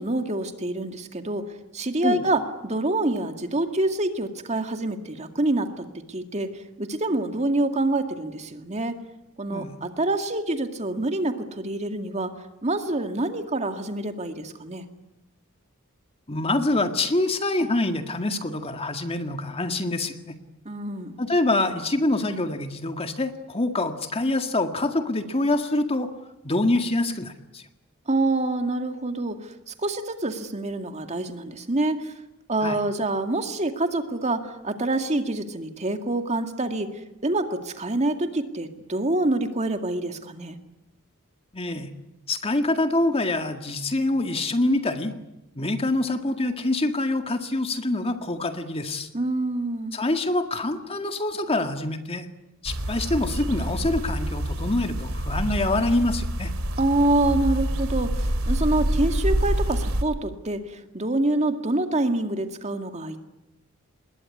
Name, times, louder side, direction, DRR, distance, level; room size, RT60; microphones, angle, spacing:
voice 1, 0.0-1.5 1.7-6.5 6.8-9.0 9.4-12.3 12.6-14.9 20.7-21.2 28.1-32.1 32.5-36.9 37.2-40.6 49.1-50.0 56.8-63.2, right 2 dB, 30° right, 6 dB, 2.1 m, -26 dB
voice 2, 16.3-20.3 21.2-26.1 26.4-27.6 32.6-32.8 41.5-41.9 42.3-45.1 45.6-49.1 49.9-52.3 52.6-56.5, left 2 dB, 30° left, 7 dB, 1.9 m, -25 dB
sound 1, 52.7-60.0, right 1 dB, 75° right, 2.6 m, -27 dB
27.0 x 21.0 x 9.7 m, 0.93 s
head